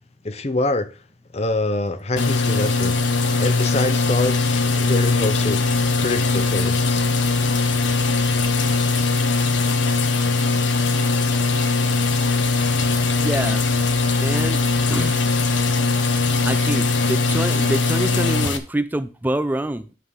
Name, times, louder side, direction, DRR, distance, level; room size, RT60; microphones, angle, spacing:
voice 1, 0.2-0.9 1.3-3.0 3.4-5.6 6.0-7.0, left 2 dB, 35° left, 0.7 m, -25 dB
sound 1, 2.2-18.6, left 3 dB, 80° left, 1.1 m, -20 dB
voice 2, 13.2-13.6 14.2-14.6 14.9-15.2 16.4-19.8, right 1 dB, 10° right, 0.4 m, -26 dB
10.0 x 3.7 x 6.4 m
head